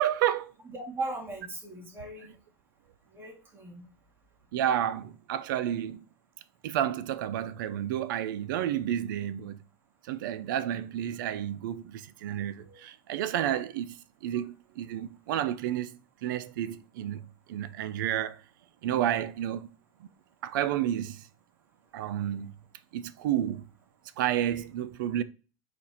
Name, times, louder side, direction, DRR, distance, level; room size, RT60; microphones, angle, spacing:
voice 1, 0.0-0.5 4.5-6.0 6.6-9.6 10.1-14.0 14.2-17.2 17.5-18.4 18.8-19.7 20.4-21.2 21.9-22.5 22.9-23.6 24.2-25.2, right 11 dB, 80° right, 0.5 m, -30 dB
voice 2, 0.6-2.4 3.1-3.8 12.6-12.8 13.4-13.5, right 2 dB, 20° right, 1.7 m, -38 dB
4.4 x 2.5 x 3.9 m
supercardioid pair, 125°, 11 cm